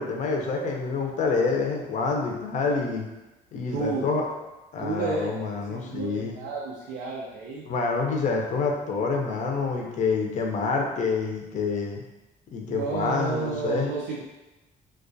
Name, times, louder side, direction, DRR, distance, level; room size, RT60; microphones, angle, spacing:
voice 1, 0.0-3.1 3.5-4.2 4.7-6.4 7.6-12.0 12.5-13.9, left 4 dB, 45° left, 0 dB, 0.5 m, -27 dB
voice 2, 3.7-4.1 4.8-5.4 5.7-7.6 12.7-14.2, right 4 dB, 85° right, -4 dB, 0.4 m, -31 dB
2.2 x 2.2 x 2.6 m, 1.0 s
cardioid pair, 110°, 17 cm